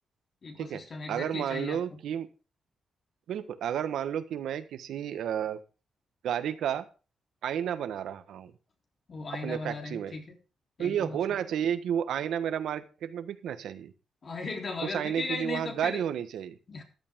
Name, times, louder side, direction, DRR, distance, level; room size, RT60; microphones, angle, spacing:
voice 1, 0.4-2.0 9.1-10.2 10.8-11.4 14.2-16.0 16.7-16.8, left 3 dB, 40° left, 2 dB, 3.5 m, -37 dB
voice 2, 1.1-2.3 3.3-5.6 6.2-6.9 7.4-8.5 9.3-10.1 10.8-13.9 14.8-16.5, right 9 dB, 90° right, 10 dB, 1.3 m, -31 dB
14.0 x 12.0 x 3.7 m, 0.33 s
wide cardioid pair, 140°, 0 cm